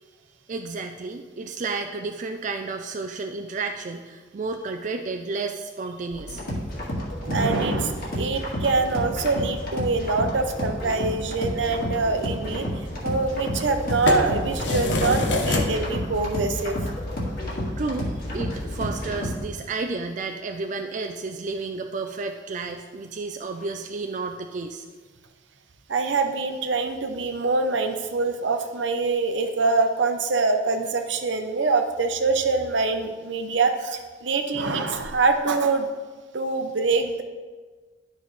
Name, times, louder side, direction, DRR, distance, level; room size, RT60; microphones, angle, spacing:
voice 1, 0.5-6.4 17.5-24.8, right 3 dB, 40° right, 4 dB, 0.4 m, -32 dB
sound 1, 6.1-19.4, equal, 50° left, 1.8 m, -31 dB
voice 2, 7.2-16.8 25.9-35.9 36.3-37.2, right 3 dB, 75° right, 6 dB, 0.7 m, -24 dB
sound 2, 13.6-18.9, left 2 dB, 65° left, 0.8 m, -29 dB
11.5 x 5.3 x 3.2 m, 1.4 s
head